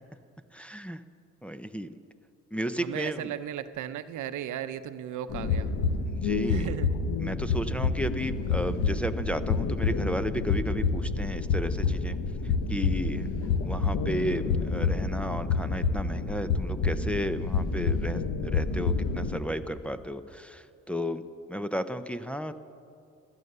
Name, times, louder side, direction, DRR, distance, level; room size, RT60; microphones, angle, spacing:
voice 1, 0.5-1.0 1.4-2.0 2.5-3.3 6.1-6.7 7.2-12.2 12.4-13.3 13.6-21.2 21.5-22.5, equal, 5° left, 8 dB, 0.6 m, -33 dB
voice 2, 2.8-5.7 6.5-6.9, right 10 dB, 80° right, 11 dB, 0.8 m, -36 dB
sound 1, 5.3-19.4, left 4 dB, 80° left, 1.2 m, -28 dB
16.0 x 12.5 x 6.7 m, 2.4 s
cardioid pair, 90°, 30 cm